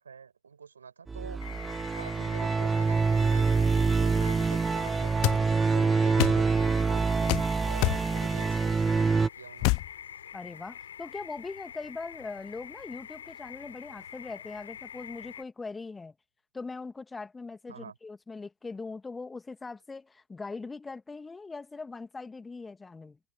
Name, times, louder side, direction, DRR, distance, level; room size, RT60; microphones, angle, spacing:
voice 1, 0.0-1.4 2.0-7.1 7.6-9.8 17.7-18.0, right 6 dB, 70° right, 5.3 m, -46 dB
sound 1, 1.1-9.3, right 4 dB, 15° right, 0.9 m, -26 dB
sound 2, 1.4-15.4, left 9 dB, 65° left, 4.7 m, -46 dB
sound 3, 5.2-5.4 6.2-6.4 7.3-7.5 7.8-8.0 9.6-9.9, left 31 dB, 45° left, 0.3 m, -25 dB
voice 2, 10.3-16.1 16.5-23.2, left 4 dB, 10° left, 2.2 m, -41 dB
figure-of-eight pair, 90°, 0 cm